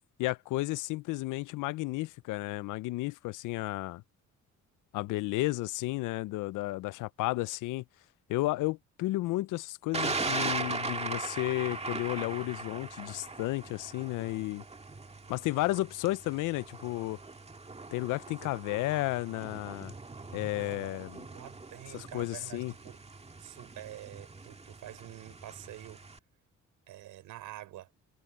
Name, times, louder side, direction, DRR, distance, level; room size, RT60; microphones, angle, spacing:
voice 1, 0.2-4.0 4.9-7.8 8.3-14.6 15.3-17.2 17.9-19.9 20.3-21.2 21.9-22.7, left 19 dB, 90° left, 0.5 m, -33 dB
Thunder, 9.9-26.2, right 3 dB, 20° right, 1.7 m, -40 dB
voice 2, 20.2-23.0 23.4-26.1 26.9-27.9, right 14 dB, 90° right, 5.4 m, -47 dB
cardioid pair, 90°, 30 cm